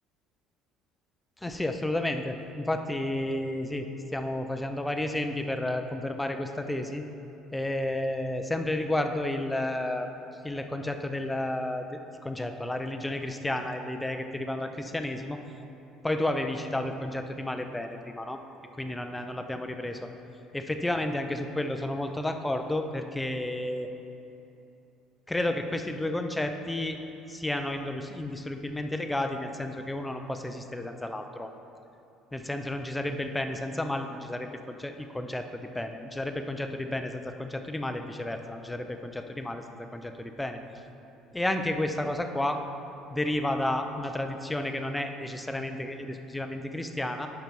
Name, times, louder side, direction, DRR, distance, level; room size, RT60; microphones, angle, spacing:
voice 1, 1.4-7.0 7.5-10.1 10.4-15.4 16.0-18.4 18.8-20.1 20.5-23.9 25.3-27.0 27.3-31.5 32.3-39.6 39.9-40.6 41.3-42.6 43.1-47.3, left 1 dB, 5° left, 6 dB, 0.5 m, -31 dB
10.5 x 5.7 x 4.7 m, 2.8 s
cardioid pair, 140°, 0 cm